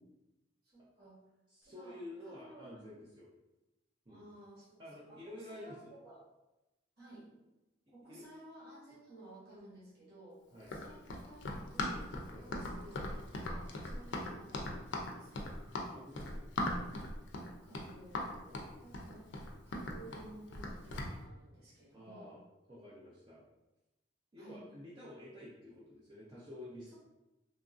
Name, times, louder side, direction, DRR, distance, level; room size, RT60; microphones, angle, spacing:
voice 1, 0.6-1.2 1.6-2.9 4.1-6.2 7.0-7.3 7.9-12.1 12.4-15.6 17.6-18.3 18.8-19.3 19.6-22.3 24.4-24.7, right 1 dB, 55° right, -8 dB, 1.2 m, -55 dB
voice 2, 1.5-3.3 4.1-4.2 4.8-5.9 8.1-8.2 10.5-10.7 12.3-12.5 15.9-16.5 18.4-18.6 21.9-22.4 22.7-23.5 24.3-26.9, left 1 dB, 25° right, -8 dB, 0.4 m, -50 dB
Run, 10.6-21.1, left 1 dB, 80° left, 0.4 m, -39 dB
2.9 x 2.5 x 2.4 m, 0.99 s
head